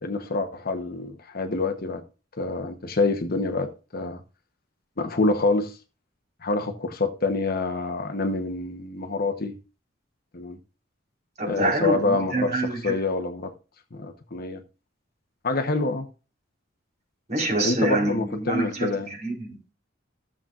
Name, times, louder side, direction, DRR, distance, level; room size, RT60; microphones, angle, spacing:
voice 1, 0.0-2.0 2.4-4.2 5.0-5.7 6.4-9.5 10.3-10.6 11.5-13.5 13.9-14.6 15.4-16.1 17.6-19.1, left 3 dB, 50° left, 1.0 m, -26 dB
voice 2, 11.4-12.8 17.3-18.9 19.2-19.7, right 2 dB, 40° right, 4.4 m, -26 dB
14.5 x 7.4 x 2.5 m
head